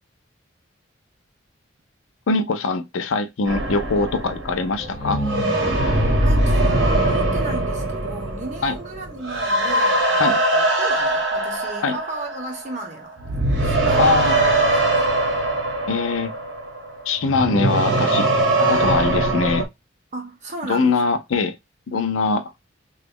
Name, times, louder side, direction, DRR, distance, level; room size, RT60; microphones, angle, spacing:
voice 1, 2.3-5.2 8.6-8.8 10.2-10.4 11.8-12.0 14.0-14.4 15.9-16.3 17.1-18.3 18.6-19.7 20.7-21.6 21.9-22.5, left 4 dB, 80° left, 0.5 m, -22 dB
sound 1, 3.5-12.9 13.2-19.7, right 1 dB, 60° right, 0.9 m, -21 dB
sound 2, 4.8-8.5, equal, 40° left, 1.3 m, -31 dB
voice 2, 6.2-13.3 13.6-14.3 14.9-15.1 20.1-21.0, right 2 dB, 35° right, 0.9 m, -34 dB
2.9 x 2.3 x 3.4 m
head